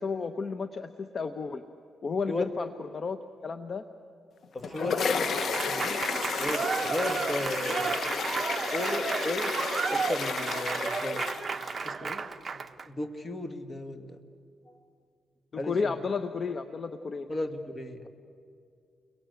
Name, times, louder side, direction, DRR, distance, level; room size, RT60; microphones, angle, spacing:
voice 1, 0.0-1.6 2.0-3.2 3.4-3.9 4.8-5.5 15.5-17.3, left 5 dB, 45° left, 9 dB, 1.0 m, -33 dB
sound 1, 4.4-11.9, left 6 dB, 60° left, 1.2 m, -33 dB
voice 2, 4.5-6.1 6.3-8.1 8.7-11.2 11.8-14.2 14.7-14.8 15.6-15.9 17.3-18.1, left 2 dB, 30° left, 7 dB, 2.1 m, -35 dB
Applause / Crowd, 4.7-12.9, right 5 dB, 35° right, 1.0 m, -32 dB
30.0 x 23.0 x 8.3 m, 2.4 s
cardioid pair, 90°, 0 cm